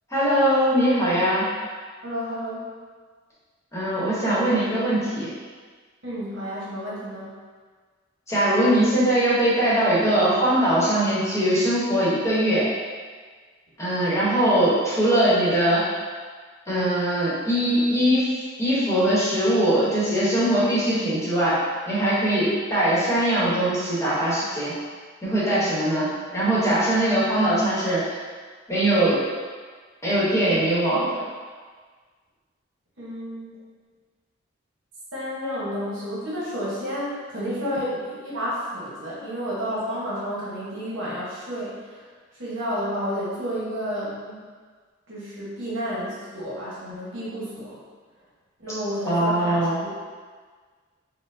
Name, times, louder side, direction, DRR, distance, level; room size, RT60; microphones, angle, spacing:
voice 1, 0.1-1.4 3.7-5.3 8.3-12.6 13.8-15.9 16.7-18.3 18.6-21.6 21.9-24.7 25.2-28.0 28.7-29.2 30.0-31.2 49.1-49.8, right 1 dB, 15° left, -10 dB, 1.0 m, -21 dB
voice 2, 2.0-2.7 6.0-7.3 33.0-33.5 35.1-42.0 42.4-44.4 45.1-47.8 48.6-49.9, equal, 70° right, -8 dB, 1.0 m, -31 dB
4.3 x 2.1 x 2.6 m, 1.5 s
head